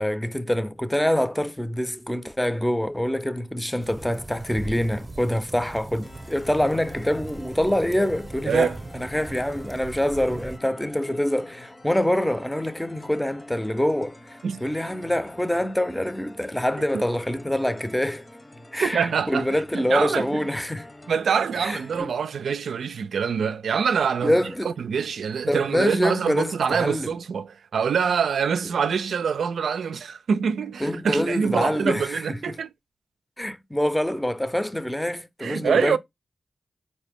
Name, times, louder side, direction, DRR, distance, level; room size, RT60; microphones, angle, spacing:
voice 1, 0.0-18.3 18.7-20.9 21.6-22.1 24.2-24.7 25.5-27.1 30.8-32.6 33.4-36.0, left 1 dB, 10° left, 0.6 m, -25 dB
sound 1, 3.8-10.6, right 2 dB, 35° right, 0.7 m, -39 dB
sound 2, 6.0-22.0, left 1 dB, 40° left, 0.9 m, -47 dB
voice 2, 8.5-8.8 14.4-14.6 18.8-20.4 21.1-24.3 24.6-32.7 35.4-36.0, right 6 dB, 90° right, 0.3 m, -25 dB
4.1 x 2.7 x 3.4 m
cardioid pair, 40°, 0 cm